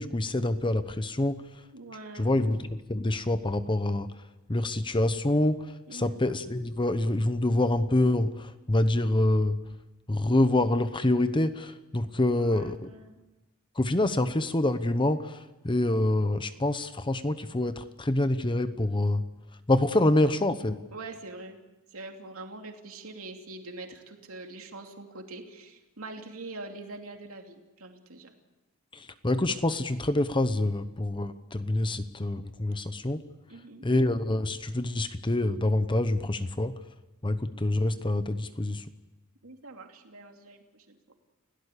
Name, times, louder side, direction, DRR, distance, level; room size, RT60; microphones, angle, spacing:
voice 1, 0.0-1.4 2.2-4.1 4.5-5.7 5.9-9.6 10.1-12.9 13.8-19.2 19.7-20.8 28.9-33.2 33.8-36.7 37.2-38.8, left 1 dB, 25° left, 11 dB, 0.9 m, -26 dB
voice 2, 1.7-2.4 5.9-6.2 12.2-13.2 20.9-21.6 21.9-28.3 33.5-33.9 39.4-41.0, right 2 dB, 80° right, 3 dB, 2.8 m, -44 dB
30.0 x 17.0 x 8.4 m, 1.1 s
head